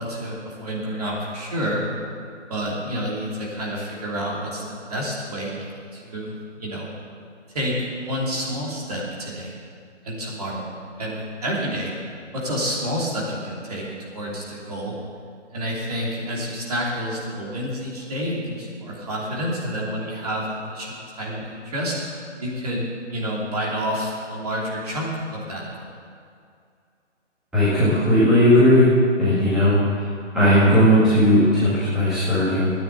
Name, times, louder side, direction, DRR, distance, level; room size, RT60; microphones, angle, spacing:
voice 1, 0.0-1.9 2.5-5.6 5.9-6.9 7.5-9.6 10.0-11.9 12.3-15.0 15.5-25.9, equal, 30° right, -4 dB, 3.0 m, -29 dB
voice 2, 27.5-28.9 29.2-29.8 30.3-32.7, left 1 dB, ahead, -17 dB, 1.9 m, -17 dB
12.5 x 9.8 x 9.1 m, 2.3 s
hypercardioid pair, 175°, 36 cm